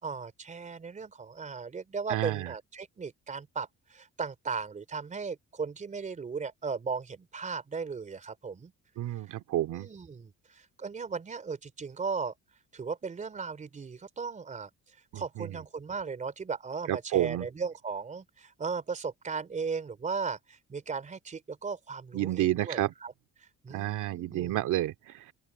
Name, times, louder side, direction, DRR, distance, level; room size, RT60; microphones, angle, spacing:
voice 1, 0.0-8.7 9.7-12.3 12.7-14.7 15.1-23.1 23.4-24.6, right 5 dB, 25° right, 3.7 m, -37 dB
voice 2, 2.1-2.5 9.0-9.9 15.1-15.6 16.9-17.5 22.1-22.9 23.7-25.2, right 14 dB, 85° right, 2.5 m, -30 dB
open air
cardioid pair, 165°, 30 cm